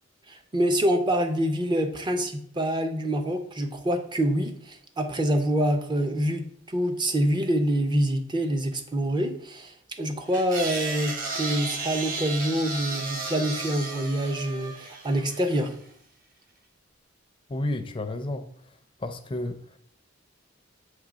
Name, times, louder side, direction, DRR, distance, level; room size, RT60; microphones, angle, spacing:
voice 1, 0.3-15.7, right 1 dB, 25° right, 6 dB, 0.7 m, -26 dB
sound 1, 10.3-15.7, right 3 dB, 45° right, 1.1 m, -34 dB
voice 2, 17.5-18.5 19.0-19.6, left 1 dB, 25° left, 8 dB, 0.5 m, -31 dB
6.6 x 3.2 x 4.9 m, 0.64 s
head